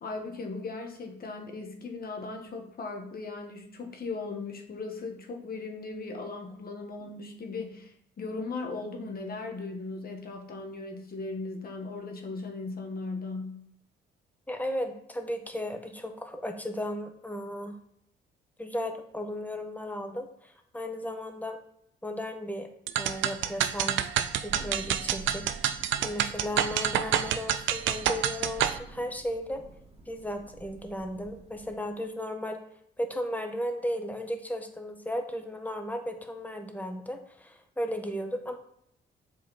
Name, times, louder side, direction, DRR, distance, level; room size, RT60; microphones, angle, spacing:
voice 1, 0.0-13.6, left 3 dB, 50° left, 3 dB, 1.6 m, -38 dB
voice 2, 14.5-17.8 18.6-21.6 22.0-22.7 22.9-24.0 24.4-25.7 26.0-29.6 30.1-32.6 33.0-38.6, equal, 10° left, 4 dB, 1.2 m, -35 dB
sound 1, 22.9-28.8, right 10 dB, 75° right, 0.5 m, -28 dB
Thunder, 23.5-31.9, right 3 dB, 30° right, 2.2 m, -49 dB
7.3 x 4.9 x 4.1 m, 0.71 s
cardioid pair, 85°, 20 cm